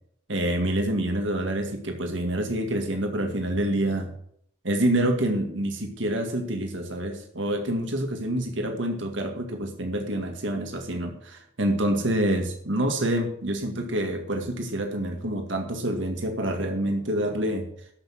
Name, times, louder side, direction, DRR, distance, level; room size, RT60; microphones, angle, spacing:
voice 1, 0.3-4.1 4.6-17.7, right 1 dB, 90° right, 4 dB, 2.0 m, -27 dB
13.0 x 6.3 x 7.7 m, 0.67 s
head